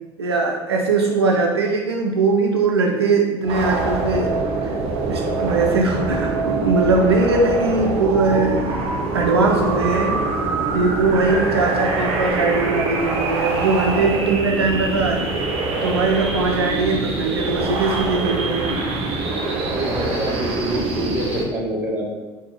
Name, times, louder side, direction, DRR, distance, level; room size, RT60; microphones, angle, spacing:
voice 1, 0.2-4.3 4.6-4.8 5.1-8.6 9.1-10.2 10.7-15.3 15.8-18.8, right 3 dB, 85° right, 1 dB, 0.5 m, -20 dB
sound 1, 3.4-21.4, right 3 dB, 50° right, 0.7 m, -24 dB
voice 2, 19.7-22.1, equal, 15° right, -2 dB, 1.2 m, -26 dB
4.1 x 2.3 x 4.2 m, 1.2 s
figure-of-eight pair, 65°, 13 cm